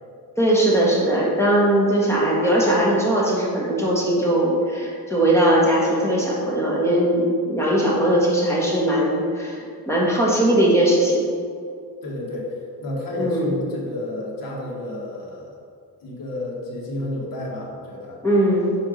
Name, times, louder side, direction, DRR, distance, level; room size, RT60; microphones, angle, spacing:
voice 1, 0.4-11.3 13.2-13.5 18.2-18.7, right 1 dB, 5° left, -5 dB, 1.4 m, -19 dB
voice 2, 12.0-15.5 16.0-18.2, left 1 dB, 60° left, -3 dB, 1.5 m, -31 dB
4.8 x 4.4 x 5.0 m, 2.3 s
cardioid pair, 125°, 37 cm